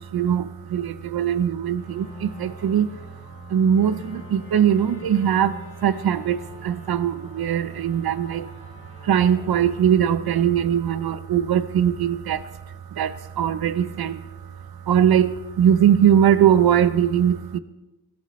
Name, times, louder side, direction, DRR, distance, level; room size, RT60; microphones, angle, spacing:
voice 1, 0.0-2.9 3.5-8.5 9.0-12.6 12.9-14.3 14.8-17.6, right 9 dB, 80° right, 13 dB, 0.7 m, -21 dB
sound 1, 1.8-11.1, left 2 dB, 30° left, 3.5 m, -44 dB
21.0 x 13.5 x 3.2 m, 1.1 s
wide cardioid pair, 180°, 37 cm